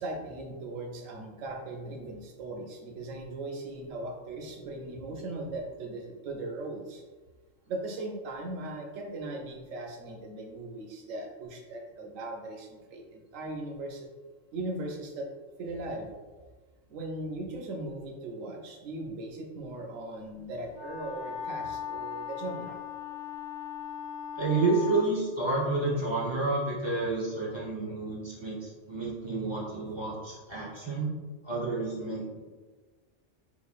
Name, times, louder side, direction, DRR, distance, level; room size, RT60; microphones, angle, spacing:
voice 1, 0.0-7.0 7.7-14.1 14.5-15.3 15.6-16.1 16.9-22.8, right 2 dB, 85° right, 1 dB, 1.0 m, -38 dB
Wind instrument woodwind instrument, 20.7-25.1, left 8 dB, 35° left, 0.5 m, -38 dB
voice 2, 24.4-31.1 31.4-32.4, right 3 dB, 30° right, -6 dB, 0.6 m, -30 dB
3.9 x 3.0 x 2.4 m, 1.3 s
omnidirectional pair, 1.3 m